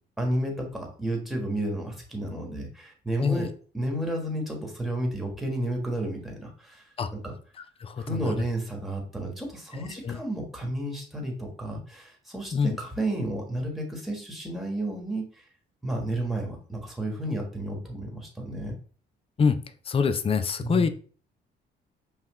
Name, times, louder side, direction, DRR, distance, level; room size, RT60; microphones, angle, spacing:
voice 1, 0.2-6.8 7.2-7.3 8.0-15.4 15.8-18.7 20.6-20.9, right 1 dB, ahead, 0 dB, 1.4 m, -32 dB
voice 2, 7.8-8.3 10.0-10.2 12.5-12.8 19.4-19.6 19.9-20.9, left 5 dB, 30° left, 10 dB, 0.4 m, -25 dB
5.7 x 2.3 x 3.1 m, 0.41 s
cardioid pair, 90°, 20 cm